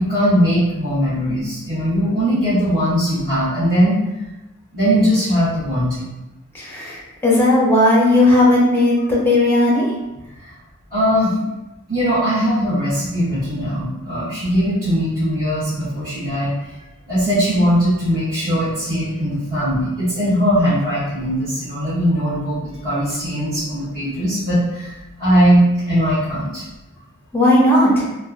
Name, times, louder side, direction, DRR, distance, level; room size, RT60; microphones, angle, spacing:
voice 1, 0.0-3.9 4.7-6.1 10.9-11.3 11.9-16.5 17.1-24.9 25.2-26.6, equal, 45° right, -15 dB, 1.3 m, -19 dB
voice 2, 6.5-9.9 27.3-28.1, left 1 dB, 10° left, -5 dB, 0.6 m, -15 dB
3.0 x 2.1 x 2.4 m, 0.98 s
head